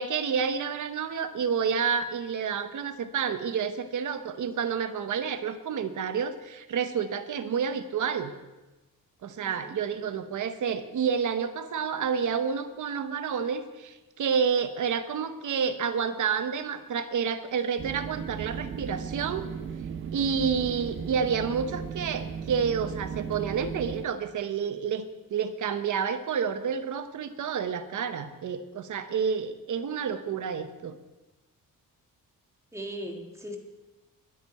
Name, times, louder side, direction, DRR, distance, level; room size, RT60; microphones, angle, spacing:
voice 1, 0.0-8.3 9.2-19.5 20.1-31.0, right 6 dB, 60° right, 10 dB, 1.0 m, -29 dB
voice 2, 9.4-9.7 32.7-33.6, equal, 10° right, 2 dB, 1.6 m, -38 dB
sound 1, 17.8-24.0, right 7 dB, 35° right, 0.5 m, -36 dB
21.0 x 8.4 x 4.3 m, 1.1 s
wide cardioid pair, 150°, 34 cm